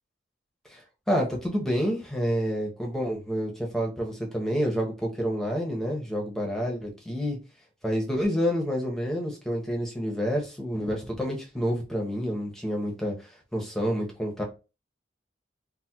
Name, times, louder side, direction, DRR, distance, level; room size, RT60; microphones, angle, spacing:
voice 1, 0.7-7.4 7.8-14.4, equal, ahead, -1 dB, 0.7 m, -28 dB
4.1 x 2.1 x 2.2 m, 0.30 s
head